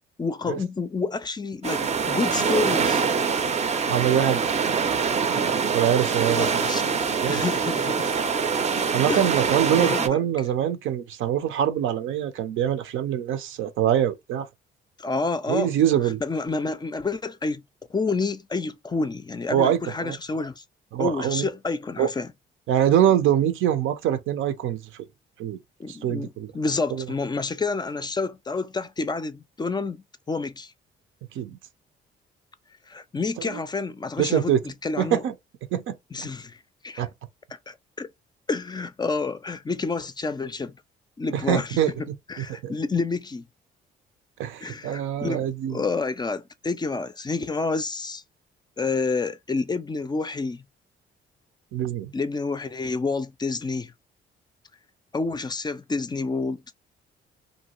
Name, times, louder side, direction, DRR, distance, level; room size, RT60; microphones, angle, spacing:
voice 1, 0.2-3.0 6.3-6.9 7.3-8.1 9.1-9.4 9.7-10.2 15.0-15.7 16.0-17.6 17.9-20.6 21.0-22.3 25.8-30.7 32.9-35.2 36.1-36.6 36.8-37.0 37.7-38.1 38.5-40.7 41.2-41.8 42.3-43.5 44.6-48.2 48.8-50.6 52.1-53.9 55.1-56.6, left 4 dB, 20° left, 0.4 m, -29 dB
sound 1, 1.6-10.1, right 5 dB, 35° right, 0.5 m, -24 dB
voice 2, 3.9-4.4 5.7-6.6 7.2-7.4 8.9-14.5 15.5-16.2 19.5-20.2 20.9-21.5 22.0-22.1 22.7-24.8 25.4-25.6 25.9-26.5 26.9-27.0 31.3-31.6 33.5-33.6 34.2-34.6 35.0-35.3 35.7-36.3 37.0-37.1 41.3-41.9 42.4-42.7 44.4-45.8 51.7-52.1, right 10 dB, 85° right, 0.5 m, -24 dB
2.6 x 2.2 x 3.0 m
cardioid pair, 90°, 20 cm